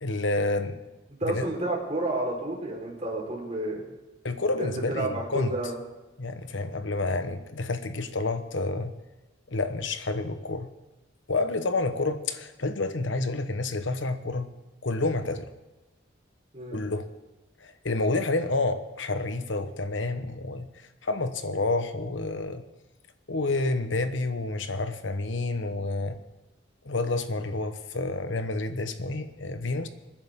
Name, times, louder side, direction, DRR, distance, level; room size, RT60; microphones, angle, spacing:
voice 1, 0.0-0.8 1.2-1.5 4.2-5.5 6.2-8.9 9.5-10.7 11.3-14.5 14.8-15.5 16.7-17.1 17.6-20.7 21.0-22.6 23.3-26.2 26.8-29.9, left 2 dB, 70° left, 9 dB, 1.1 m, -29 dB
voice 2, 1.2-3.8 4.6-5.8 16.5-16.9, right 2 dB, 35° right, -2 dB, 4.4 m, -31 dB
27.0 x 10.5 x 3.8 m, 1.1 s
head